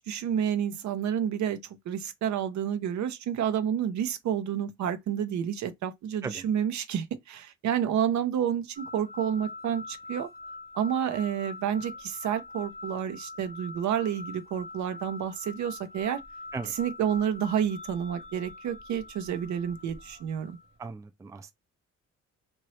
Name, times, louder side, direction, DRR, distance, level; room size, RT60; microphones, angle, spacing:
voice 1, 0.1-1.6 1.9-10.3 10.8-16.2 16.8-20.6, right 9 dB, 70° right, 0.8 m, -29 dB
sound 1, 8.7-20.7, left 3 dB, 40° right, 0.9 m, -44 dB
voice 2, 20.8-21.5, right 4 dB, 10° right, 0.4 m, -37 dB
3.0 x 2.6 x 3.1 m
cardioid pair, 90°, 30 cm